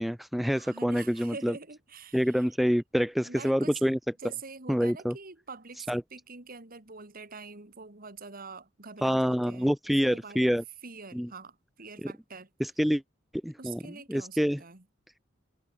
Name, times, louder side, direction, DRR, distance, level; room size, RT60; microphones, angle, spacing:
voice 1, 0.0-1.5 2.1-4.0 4.7-5.1 5.9-6.0 9.0-10.6 11.1-11.3 12.0-12.1 12.6-13.0 13.4-13.8 14.1-14.6, equal, ahead, 0.5 m, -26 dB
voice 2, 0.5-2.5 3.2-3.8 4.2-10.6 10.8-12.5 13.6-14.8, right 4 dB, 45° right, 2.5 m, -45 dB
head